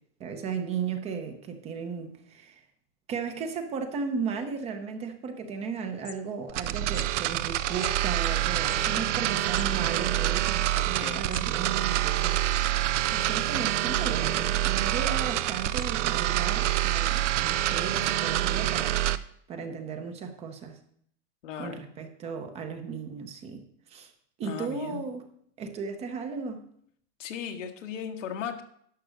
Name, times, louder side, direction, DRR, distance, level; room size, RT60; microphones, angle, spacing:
voice 1, 0.2-2.6 3.1-12.4 13.1-19.0 19.5-20.8 21.6-23.6 23.9-24.1 24.4-25.2 25.6-26.6, right 5 dB, 15° right, 7 dB, 0.7 m, -35 dB
sound 1, 5.5-5.6 5.8-6.6 6.9-7.1 7.8-8.0 8.6-11.5 11.8-11.9 12.1-12.7 13.1-13.5 14.0-14.5 14.9-15.0 15.5-16.2 16.6-16.8 17.5-17.6, left 13 dB, 35° left, 0.6 m, -50 dB
sound 2, 6.5-19.2, right 13 dB, 75° right, 0.7 m, -26 dB
voice 2, 10.7-11.3 21.4-21.8 24.4-25.0 27.2-28.6, left 8 dB, 90° left, 5 dB, 1.7 m, -37 dB
11.5 x 6.0 x 6.3 m, 0.66 s
supercardioid pair, 165°, 36 cm